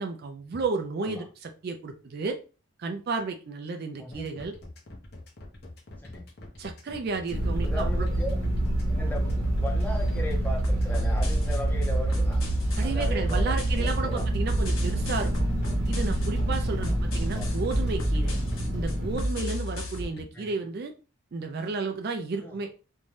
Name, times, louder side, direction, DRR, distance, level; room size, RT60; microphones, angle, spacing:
voice 1, 0.0-2.4 2.8-4.5 6.6-8.1 12.7-15.5 15.9-18.3 18.7-20.9 21.3-22.7, right 4 dB, 45° right, 5 dB, 0.3 m, -32 dB
sound 1, 4.1-20.2, left 1 dB, 50° left, 0.7 m, -45 dB
sound 2, 7.3-19.2, right 1 dB, 80° right, 0.9 m, -27 dB
voice 2, 7.6-8.4 8.9-12.5 12.8-14.3 16.8-17.1 17.3-17.5 20.3-20.6 22.3-22.6, left 1 dB, 10° left, -1 dB, 0.5 m, -37 dB
sound 3, 10.6-20.0, equal, 75° left, 0.8 m, -31 dB
2.6 x 2.2 x 3.2 m, 0.34 s
head